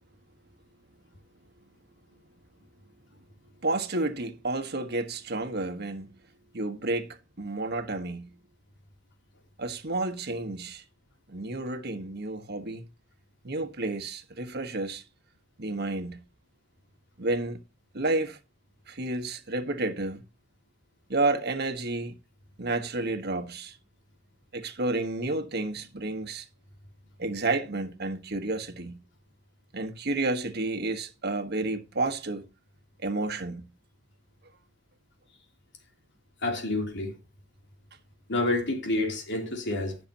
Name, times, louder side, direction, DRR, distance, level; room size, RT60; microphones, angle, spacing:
voice 1, 3.6-6.1 6.5-8.3 9.6-10.8 11.3-12.9 13.4-15.0 15.6-16.2 17.2-17.6 17.9-18.4 18.9-20.2 21.1-22.2 22.6-23.8 24.5-26.5 27.2-29.0 29.7-32.4 33.0-33.7, right 2 dB, 55° right, 1.3 m, -31 dB
voice 2, 36.4-37.2 38.3-40.0, left 2 dB, 65° left, 3.1 m, -28 dB
19.0 x 6.8 x 2.9 m
head